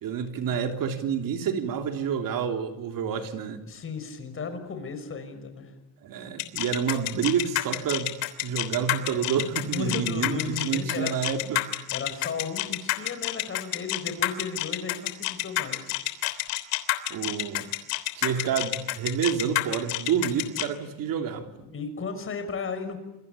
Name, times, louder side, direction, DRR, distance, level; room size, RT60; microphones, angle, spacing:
voice 1, 0.0-3.6 6.0-8.1 8.4-11.7 17.1-17.7 18.2-21.5, right 7 dB, 50° right, 6 dB, 3.3 m, -28 dB
voice 2, 3.7-5.7 9.7-11.3 11.9-15.9 21.7-23.0, left 5 dB, 30° left, 8 dB, 5.8 m, -35 dB
sound 1, 6.4-20.6, left 19 dB, 80° left, 3.4 m, -28 dB
28.0 x 23.0 x 8.5 m, 1.0 s
cardioid pair, 140°, 42 cm